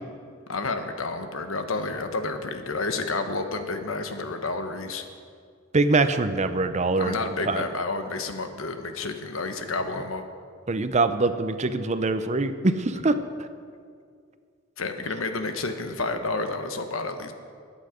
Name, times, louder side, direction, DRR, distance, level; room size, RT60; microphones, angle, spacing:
voice 1, 0.5-5.0 7.0-10.2 14.8-17.3, left 3 dB, 90° left, 7 dB, 1.2 m, -30 dB
voice 2, 5.7-7.6 10.7-13.2, right 3 dB, 35° right, 10 dB, 0.6 m, -23 dB
21.0 x 8.8 x 5.1 m, 2.2 s
head